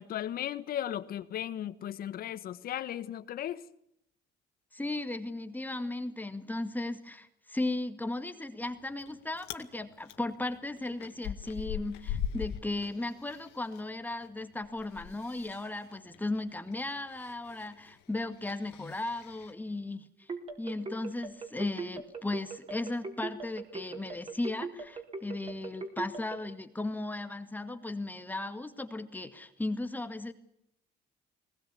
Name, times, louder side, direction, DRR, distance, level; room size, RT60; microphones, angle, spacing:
voice 1, 0.0-3.6, left 11 dB, 60° left, 1.4 m, -36 dB
voice 2, 4.7-20.3 20.6-30.3, left 2 dB, 10° left, 2.0 m, -36 dB
Chewing mastication, 8.6-9.1 9.4-9.7 10.1-13.8 14.1-19.5, left 9 dB, 90° left, 1.9 m, -41 dB
sound 1, 20.3-26.4, right 4 dB, 35° right, 4.6 m, -39 dB
21.0 x 19.5 x 8.5 m
cardioid pair, 110°, 17 cm